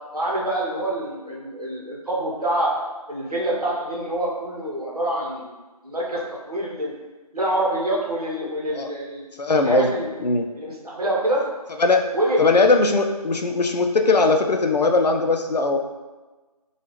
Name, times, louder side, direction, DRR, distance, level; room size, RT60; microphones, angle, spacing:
voice 1, 0.1-2.7 3.1-5.5 5.8-6.9 7.3-10.1 10.6-11.4 12.1-12.4, right 1 dB, 70° right, -4 dB, 0.9 m, -26 dB
voice 2, 8.4-8.9 9.4-9.9 10.2-10.5 11.8-12.1 12.4-15.8, left 3 dB, 85° left, 4 dB, 0.4 m, -19 dB
3.1 x 2.3 x 3.1 m, 1.2 s
figure-of-eight pair, 175°, 20 cm